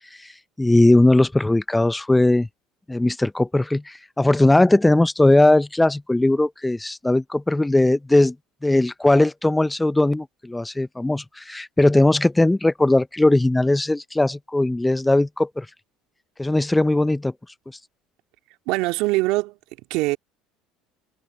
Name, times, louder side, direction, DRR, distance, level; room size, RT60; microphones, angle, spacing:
voice 1, 0.6-2.5 2.9-8.3 8.6-15.7 16.4-17.3, left 2 dB, 10° left, 0.8 m, -19 dB
voice 2, 18.7-19.5 19.9-20.2, right 21 dB, 70° right, 2.8 m, -22 dB
hypercardioid pair, 75°, 0 cm